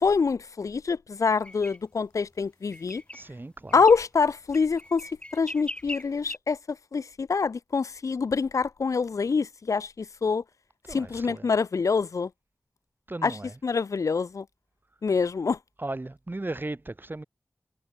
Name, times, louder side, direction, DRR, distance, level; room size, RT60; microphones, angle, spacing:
voice 1, 0.0-3.0 3.7-6.6 6.9-10.4 10.9-12.3 13.2-13.4 13.6-14.4 15.0-15.6, left 5 dB, 85° left, 0.5 m, -25 dB
sound 1, 1.4-1.8 2.7-3.3 3.7-4.0 4.5-6.4, left 1 dB, 20° left, 2.9 m, -39 dB
voice 2, 3.1-3.8 10.9-11.5 13.1-13.6 15.8-17.2, right 2 dB, 40° right, 2.0 m, -36 dB
cardioid pair, 40°, 5 cm